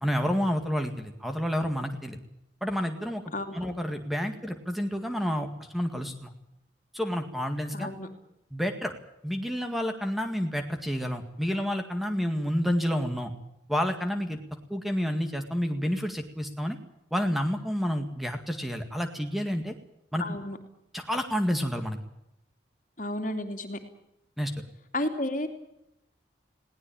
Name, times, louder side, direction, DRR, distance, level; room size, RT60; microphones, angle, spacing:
voice 1, 0.0-2.2 2.6-3.2 3.5-6.3 6.9-7.9 8.5-8.9 9.2-13.3 13.7-14.4 14.7-16.8 17.1-19.7 20.1-20.4 20.9-22.0 24.4-24.5, equal, ahead, 5 dB, 2.0 m, -29 dB
voice 2, 3.3-3.6 7.7-8.1 20.2-20.6 23.0-23.8 24.9-25.5, left 1 dB, 45° left, 6 dB, 2.9 m, -32 dB
21.0 x 18.5 x 8.9 m, 0.83 s
head